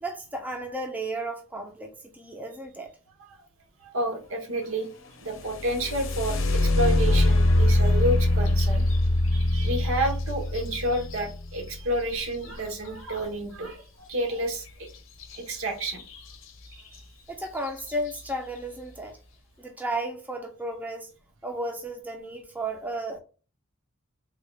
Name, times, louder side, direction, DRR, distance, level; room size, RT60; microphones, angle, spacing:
voice 1, 0.0-2.9 17.3-19.2 19.6-21.1 21.4-23.2, right 1 dB, 10° right, 0.4 m, -33 dB
voice 2, 3.8-8.8 9.3-14.9 15.3-16.0 16.6-17.0, right 1 dB, 75° right, 1.0 m, -30 dB
sound 1, 5.3-13.1 15.2-15.4 15.8-16.3 16.9-17.0 17.6-17.9, left 1 dB, 65° left, 0.6 m, -24 dB
3.6 x 2.2 x 3.3 m
head